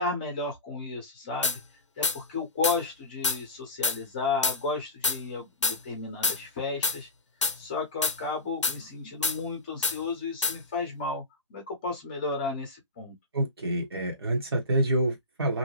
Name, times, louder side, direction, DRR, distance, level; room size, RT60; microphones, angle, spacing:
voice 1, 0.0-1.6 2.0-7.1 7.6-11.2 11.5-13.1, left 3 dB, 15° left, 0.8 m, -33 dB
sound 1, 1.4-1.6 2.0-2.2 2.6-2.8 3.2-3.4 3.8-4.0 4.4-4.6 5.0-5.2 5.6-5.8 6.2-6.4 6.8-7.0 7.4-7.6 8.0-8.2 8.6-8.8 9.2-9.4 9.8-10.0 10.4-10.6, left 4 dB, 70° left, 0.6 m, -26 dB
voice 2, 13.3-15.6, right 1 dB, 50° right, 0.9 m, -27 dB
2.7 x 2.1 x 2.9 m
figure-of-eight pair, 155°, 16 cm